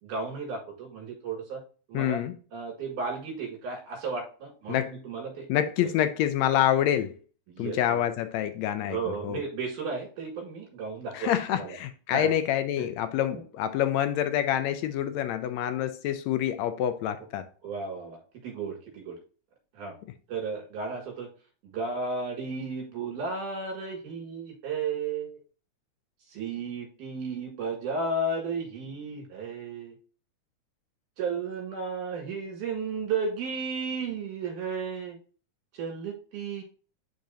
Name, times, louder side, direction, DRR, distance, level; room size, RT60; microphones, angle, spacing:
voice 1, 0.0-1.6 1.9-2.2 2.5-5.5 5.8-5.9 7.5-8.0 8.8-11.8 12.1-12.3 12.8-12.9 13.3-13.4 17.6-19.2 19.7-20.0 20.3-21.3 21.6-25.4 26.3-30.0 31.2-35.2 35.7-36.6, right 4 dB, 80° right, 3.4 m, -34 dB
voice 2, 1.9-2.3 4.7-4.9 5.5-7.1 7.6-9.0 9.2-9.4 11.1-17.5, left 11 dB, 80° left, 1.6 m, -27 dB
10.5 x 3.9 x 2.8 m
omnidirectional pair, 3.6 m